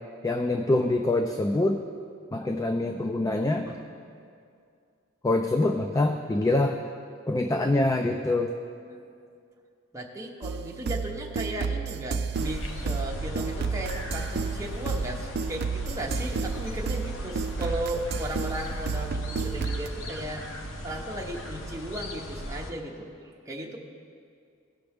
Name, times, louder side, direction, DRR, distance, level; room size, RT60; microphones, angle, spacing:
voice 1, 0.2-1.8 2.3-3.7 5.2-6.9 7.3-8.5, left 2 dB, 15° left, 5 dB, 0.3 m, -25 dB
voice 2, 8.9-9.2 9.9-20.5 20.8-23.8, right 1 dB, 15° right, -1 dB, 1.0 m, -36 dB
sound 1, 10.4-19.9, right 5 dB, 55° right, 0.4 m, -32 dB
sound 2, 12.3-22.7, equal, 75° left, 0.9 m, -37 dB
17.0 x 6.0 x 3.5 m, 2.3 s
head